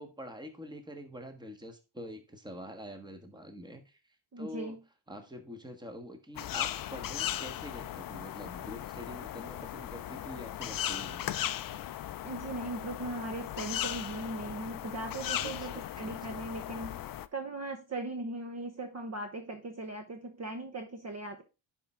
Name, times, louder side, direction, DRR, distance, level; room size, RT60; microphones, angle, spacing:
voice 1, 0.0-4.8 5.1-11.3 15.3-16.4, equal, 10° right, 6 dB, 1.4 m, -46 dB
voice 2, 4.3-4.8 12.2-17.0 17.3-21.4, right 2 dB, 30° right, 5 dB, 1.1 m, -39 dB
sound 1, 6.3-17.3, left 12 dB, 45° left, 0.5 m, -37 dB
10.5 x 4.6 x 3.6 m, 0.29 s
cardioid pair, 110°, 49 cm